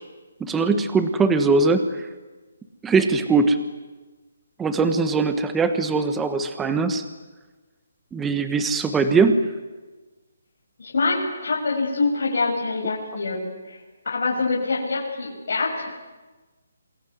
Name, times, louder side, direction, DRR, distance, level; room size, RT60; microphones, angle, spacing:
voice 1, 0.4-2.1 2.8-3.6 4.6-7.0 8.1-9.4, right 4 dB, 10° right, 9 dB, 1.4 m, -21 dB
voice 2, 10.8-13.8 14.1-15.9, left 3 dB, 60° left, -3 dB, 7.3 m, -25 dB
27.5 x 21.0 x 9.6 m, 1.2 s
hypercardioid pair, 160°, 0 cm